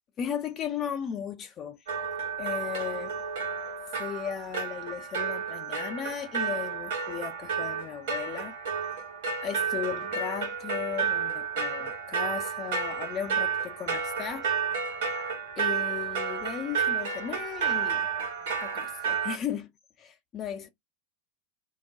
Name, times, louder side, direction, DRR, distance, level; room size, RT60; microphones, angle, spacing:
voice 1, 0.2-1.8 2.4-3.2 4.0-8.5 9.4-14.5 15.6-18.1 18.6-19.7 20.0-20.7, left 8 dB, 30° left, 0.5 m, -36 dB
sound 1, 1.9-19.4, right 6 dB, 55° right, 1.1 m, -31 dB
2.3 x 2.1 x 3.7 m
figure-of-eight pair, 90°, 0 cm